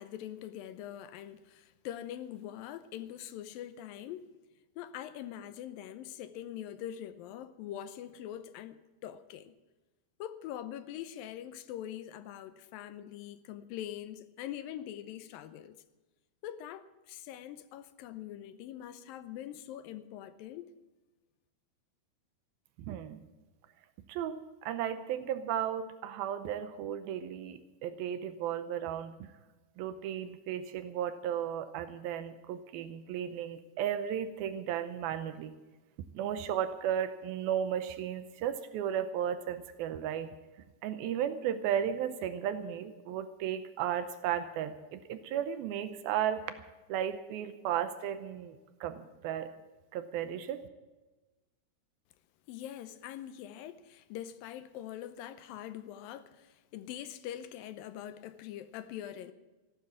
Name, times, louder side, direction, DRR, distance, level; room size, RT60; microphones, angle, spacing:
voice 1, 0.0-4.3 4.8-9.5 10.2-15.8 16.4-20.7 52.5-59.3, left 11 dB, 80° left, 2.3 m, -43 dB
voice 2, 22.8-23.2 24.1-29.2 29.8-35.6 36.1-40.3 40.8-46.5 46.9-49.5 49.9-50.6, right 9 dB, 85° right, 2.5 m, -34 dB
15.0 x 12.0 x 7.0 m
omnidirectional pair, 4.4 m